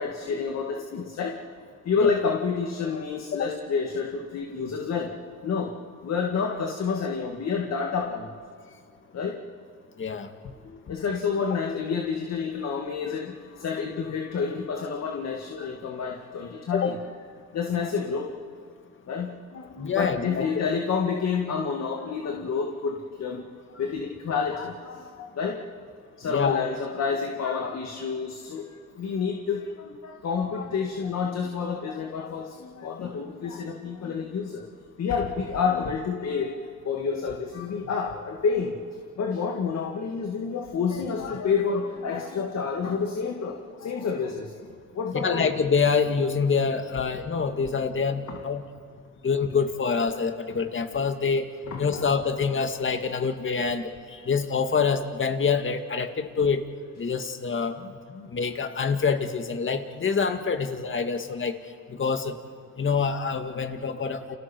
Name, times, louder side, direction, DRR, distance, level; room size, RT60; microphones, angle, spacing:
voice 1, 0.0-1.4 1.9-5.1 5.4-5.7 6.0-8.3 9.1-9.4 10.6-17.0 17.5-18.3 19.1-23.4 23.8-25.6 26.2-28.6 29.0-34.6 35.0-38.7 39.2-44.5 45.0-45.5 48.3-48.4 51.7-52.1 57.8-58.3, left 5 dB, 60° left, 1 dB, 2.3 m, -29 dB
voice 2, 10.0-10.3 15.6-15.7 16.7-16.9 19.8-20.5 26.3-26.6 45.1-48.6 49.2-51.5 51.8-56.6 57.0-57.8 58.3-61.6 61.9-62.4 62.8-64.3, left 5 dB, 40° left, 6 dB, 2.1 m, -26 dB
30.0 x 29.5 x 4.7 m, 2.1 s
cardioid pair, 90°, 30 cm